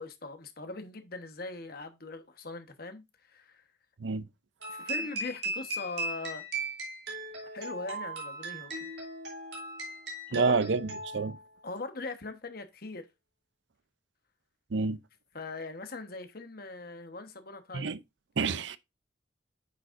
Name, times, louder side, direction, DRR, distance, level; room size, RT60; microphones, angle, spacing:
voice 1, 0.0-3.6 4.7-6.4 7.5-8.9 10.3-10.6 11.6-13.1 15.3-17.9, left 3 dB, 55° left, 1.2 m, -41 dB
sound 1, 4.6-11.4, right 2 dB, 65° right, 3.0 m, -38 dB
voice 2, 10.3-11.4 14.7-15.0 17.7-18.0 18.4-18.8, right 4 dB, 80° right, 0.6 m, -28 dB
8.8 x 6.5 x 2.6 m
head